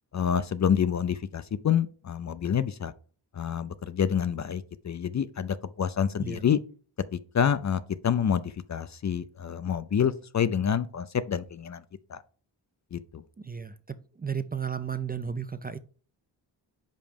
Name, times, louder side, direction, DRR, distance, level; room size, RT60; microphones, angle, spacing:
voice 1, 0.1-2.9 3.4-6.6 7.1-11.8 12.1-12.2 12.9-13.2, left 8 dB, 40° left, 0.4 m, -27 dB
voice 2, 13.4-15.8, right 7 dB, 20° right, 0.4 m, -34 dB
5.3 x 4.5 x 5.1 m
cardioid pair, 70°, 44 cm